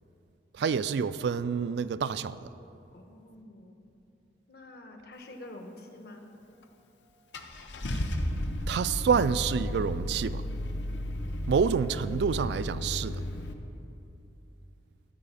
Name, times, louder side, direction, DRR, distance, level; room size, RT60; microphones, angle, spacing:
voice 1, 0.6-2.4 8.7-10.4 11.5-13.2, right 6 dB, 70° right, 15 dB, 0.3 m, -27 dB
voice 2, 2.9-3.8 4.5-6.3, left 1 dB, 60° left, 4 dB, 1.0 m, -47 dB
Car / Engine starting, 6.6-6.7 7.3-13.5, left 1 dB, 85° left, 0.8 m, -33 dB
14.0 x 4.9 x 6.9 m, 2.8 s
head